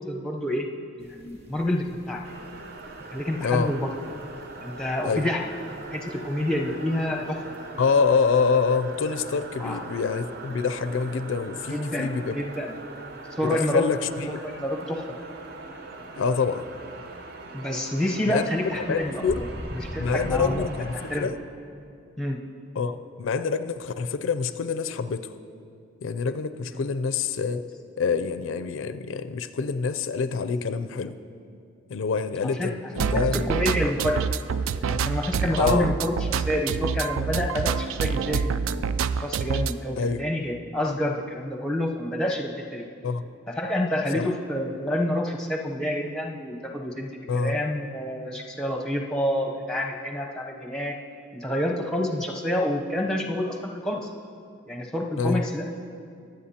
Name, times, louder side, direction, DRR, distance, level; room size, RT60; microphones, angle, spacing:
voice 1, 0.1-0.7 1.0-2.2 3.1-3.9 4.6-5.4 5.9-7.4 9.6-9.8 11.7-12.7 13.3-13.9 14.3-15.0 17.5-19.5 19.9-20.6 21.1-21.3 22.2-22.4 26.7-26.8 32.6-34.3 34.8-38.5 39.2-42.9 43.5-51.0 51.3-54.1 54.7-55.7, left 1 dB, 5° left, 1 dB, 0.7 m, -28 dB
sound 1, 1.0-20.7, equal, 30° right, 1.4 m, -44 dB
sound 2, 2.2-21.3, right 3 dB, 50° right, 0.7 m, -41 dB
voice 2, 3.4-3.7 5.0-5.3 7.8-12.4 13.4-14.3 16.2-16.7 18.3-18.4 18.7-19.4 20.0-21.3 22.8-25.4 26.0-27.6 28.0-31.2 31.9-33.5 35.6-35.9 40.0-40.2 43.0-43.2 44.1-44.2 47.3-47.6 55.2-55.4, left 5 dB, 70° left, 11 dB, 0.4 m, -26 dB
sound 3, 33.0-39.7, right 6 dB, 80° right, 0.3 m, -26 dB
22.5 x 8.0 x 2.8 m, 2.4 s
head